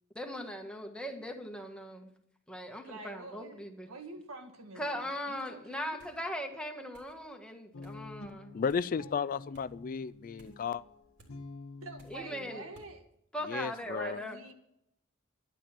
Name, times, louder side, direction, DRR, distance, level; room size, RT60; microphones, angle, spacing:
voice 1, 0.1-2.1 2.5-3.9 4.8-8.5 12.1-12.6 13.3-14.4, equal, 5° left, 3 dB, 1.5 m, -39 dB
voice 2, 2.8-6.0 11.8-13.0 13.9-14.5, right 2 dB, 80° right, 5 dB, 1.7 m, -47 dB
sound 1, 6.0-6.2 6.9-7.2 7.8-8.0 8.7-8.9 9.5-9.7 10.4-10.6 11.2-11.4 12.0-12.3 12.7-12.9, right 1 dB, 60° right, 3.3 m, -59 dB
Guitar, 7.7-12.9, left 3 dB, 85° left, 1.2 m, -49 dB
voice 3, 8.5-10.8 13.5-14.2, left 6 dB, 40° left, 16 dB, 0.4 m, -34 dB
12.0 x 10.0 x 5.9 m, 0.76 s
head